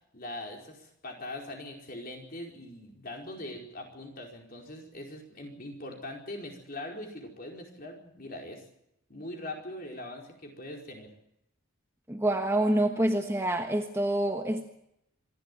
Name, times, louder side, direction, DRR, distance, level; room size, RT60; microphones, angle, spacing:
voice 1, 0.1-8.6 9.1-11.1, left 1 dB, 40° left, 1 dB, 4.7 m, -41 dB
voice 2, 12.1-14.7, right 1 dB, 10° right, 4 dB, 1.3 m, -27 dB
25.5 x 12.0 x 9.4 m, 0.81 s
head